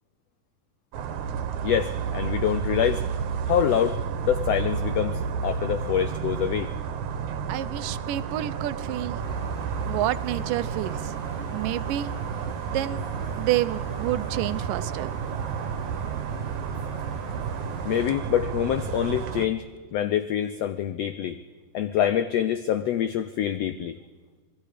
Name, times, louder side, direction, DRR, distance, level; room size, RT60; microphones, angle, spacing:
sound 1, 0.9-19.5, right 7 dB, 70° right, 2.5 m, -31 dB
voice 1, 1.6-3.0 3.5-4.0 4.2-6.7 17.8-19.6 19.9-21.4 21.7-24.0, left 10 dB, 85° left, 12 dB, 1.4 m, -25 dB
voice 2, 7.5-9.2 9.9-11.1 11.5-12.1 12.6-13.0 13.4-15.1, right 14 dB, 85° right, 14 dB, 2.4 m, -29 dB
sound 2, 9.2-18.0, left 2 dB, 65° left, 5.9 m, -45 dB
27.0 x 20.5 x 5.0 m, 1.5 s
omnidirectional pair, 3.7 m